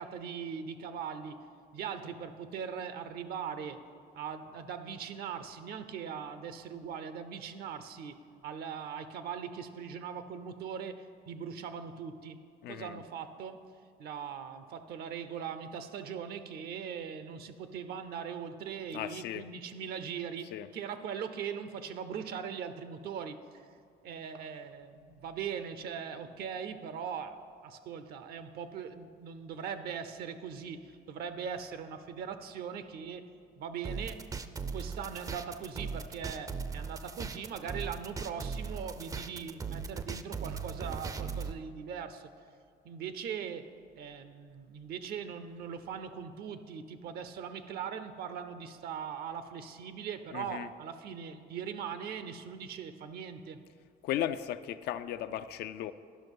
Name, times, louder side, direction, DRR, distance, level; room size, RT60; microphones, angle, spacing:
voice 1, 0.0-1.4 1.7-3.8 4.1-8.2 8.4-12.4 12.7-13.6 14.0-23.6 24.0-33.3 33.6-34.2 34.7-42.3 42.8-53.6, right 7 dB, 65° right, 10 dB, 0.6 m, -40 dB
voice 2, 12.6-13.0 18.9-19.5 20.5-20.7 50.3-50.7 54.0-55.9, left 11 dB, 75° left, 12 dB, 0.4 m, -36 dB
sound 1, 33.8-41.5, right 5 dB, 20° right, 0.4 m, -38 dB
11.0 x 5.7 x 5.3 m, 2.2 s
cardioid pair, 110°, 17 cm